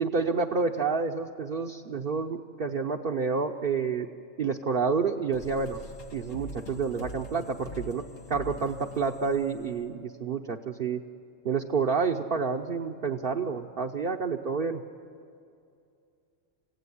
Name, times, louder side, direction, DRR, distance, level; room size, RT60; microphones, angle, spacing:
voice 1, 0.0-4.1 4.4-5.8 6.1-11.0 11.4-14.8, right 5 dB, 50° right, 1 dB, 1.0 m, -29 dB
sound 1, 5.3-10.6, left 2 dB, 85° left, 1.8 m, -44 dB
27.5 x 16.5 x 9.8 m, 2.5 s
omnidirectional pair, 1.3 m